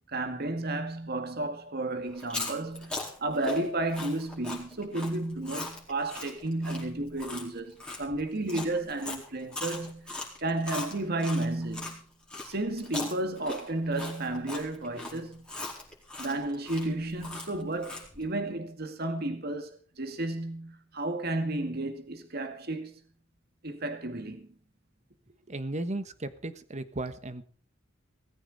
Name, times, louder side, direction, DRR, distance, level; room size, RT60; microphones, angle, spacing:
voice 1, 0.1-12.0 12.4-15.5 16.2-23.0 23.6-24.5, right 2 dB, 55° right, 2.2 m, -32 dB
Chewing mastication, 2.1-11.9 12.3-18.2, left 2 dB, 5° left, 4.5 m, -39 dB
voice 2, 25.5-27.4, right 2 dB, 35° right, 1.4 m, -35 dB
18.5 x 15.0 x 4.2 m
head